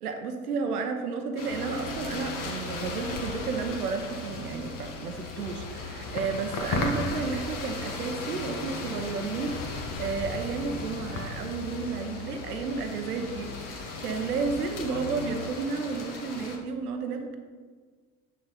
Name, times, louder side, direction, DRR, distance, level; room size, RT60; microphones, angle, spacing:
voice 1, 0.0-17.4, right 4 dB, 85° right, 5 dB, 0.8 m, -32 dB
sound 1, 1.4-16.6, left 2 dB, 45° left, 1.5 m, -37 dB
sound 2, 1.5-15.5, left 8 dB, 90° left, 0.5 m, -43 dB
7.8 x 6.3 x 4.0 m, 1.5 s
hypercardioid pair, 65°, 44 cm